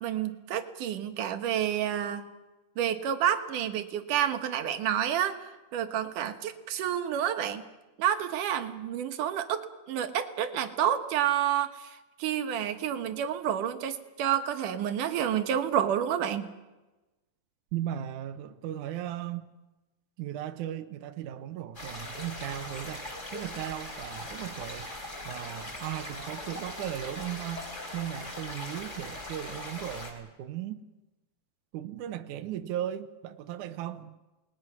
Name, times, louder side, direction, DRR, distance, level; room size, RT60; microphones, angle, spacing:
voice 1, 0.0-2.2 2.8-5.4 5.7-7.6 8.0-16.5, right 10 dB, 65° right, 8 dB, 2.4 m, -29 dB
voice 2, 17.7-19.5 20.2-24.9 25.2-27.7 27.9-30.8 31.7-34.2, right 11 dB, 80° right, 8 dB, 1.8 m, -37 dB
sound 1, 21.7-30.1, left 1 dB, 15° left, 4.6 m, -40 dB
29.0 x 20.5 x 6.1 m, 1.1 s
omnidirectional pair, 4.8 m